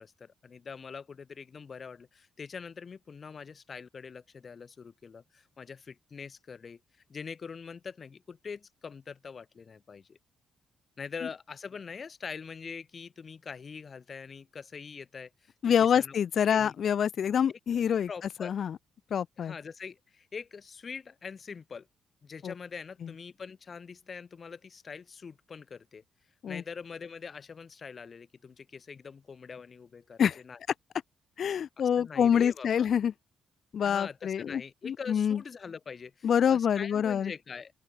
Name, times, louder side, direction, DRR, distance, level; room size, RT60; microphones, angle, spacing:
voice 1, 0.0-6.8 7.1-10.2 11.0-16.1 16.5-16.7 17.5-17.6 18.1-18.5 19.4-21.9 22.2-26.0 26.5-30.6 31.8-32.9 33.8-37.7, left 5 dB, 40° left, 6.8 m, -43 dB
voice 2, 15.6-18.1 18.4-18.8 19.1-19.5 22.4-22.5 26.4-26.6 30.2-30.4 31.4-33.1 33.7-35.4 36.2-37.3, left 8 dB, 55° left, 0.7 m, -26 dB
open air
cardioid pair, 90°, 0 cm